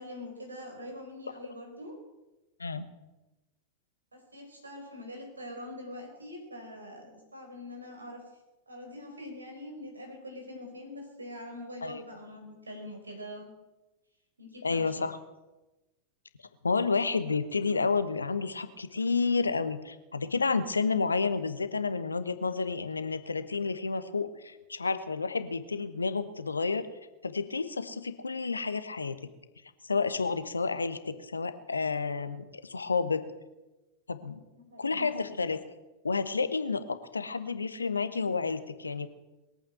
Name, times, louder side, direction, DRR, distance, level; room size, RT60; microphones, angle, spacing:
voice 1, 0.0-2.0 4.1-8.2 8.7-13.5 14.4-15.1 34.5-35.0, left 1 dB, 80° right, 3 dB, 4.7 m, -44 dB
voice 2, 14.6-15.2 16.6-26.8 27.2-29.2 29.9-33.2 34.1-34.4 34.8-35.6 36.0-39.1, left 4 dB, 75° left, 12 dB, 1.1 m, -30 dB
22.0 x 8.7 x 7.7 m, 1.0 s
figure-of-eight pair, 90°, 0 cm